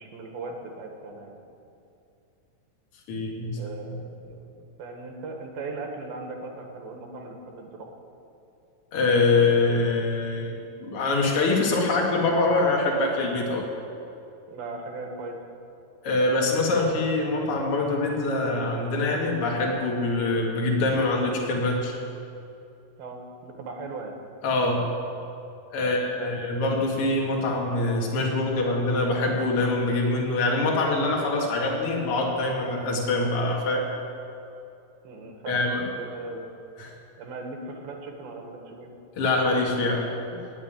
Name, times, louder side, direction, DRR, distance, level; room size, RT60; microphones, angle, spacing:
voice 1, 0.0-1.4 3.6-7.9 14.5-15.4 23.0-24.1 25.8-26.4 35.0-36.5 37.2-38.9, right 3 dB, 75° right, 2 dB, 3.4 m, -38 dB
voice 2, 3.1-3.6 3.9-4.0 8.9-13.7 16.0-21.9 24.4-24.9 25.7-33.8 35.5-35.9 36.8-36.9 39.1-40.5, left 2 dB, 45° left, -1 dB, 2.6 m, -24 dB
19.0 x 7.4 x 8.9 m, 2.7 s
omnidirectional pair, 4.3 m